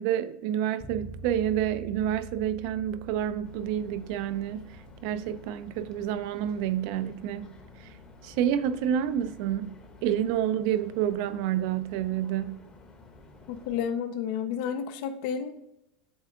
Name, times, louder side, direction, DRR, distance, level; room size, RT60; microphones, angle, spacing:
voice 1, 0.0-4.7 5.0-7.5 8.2-9.7 10.0-12.6, right 10 dB, 55° right, 0.4 m, -28 dB
Bass guitar, 0.8-10.6, equal, ahead, 0.6 m, -48 dB
sound 1, 3.4-13.8, left 2 dB, 20° left, 0.9 m, -52 dB
voice 2, 13.5-15.5, left 8 dB, 60° left, 0.5 m, -31 dB
7.9 x 3.4 x 3.7 m
supercardioid pair, 150°, 5 cm